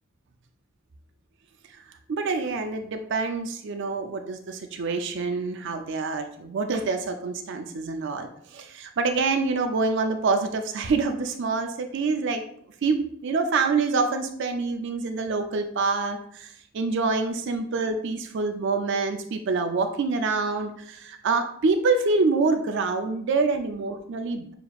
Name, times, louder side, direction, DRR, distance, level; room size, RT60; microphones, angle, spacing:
voice 1, 2.1-12.4 12.8-24.5, right 4 dB, 60° right, 6 dB, 0.4 m, -26 dB
6.6 x 2.9 x 2.3 m, 0.67 s
head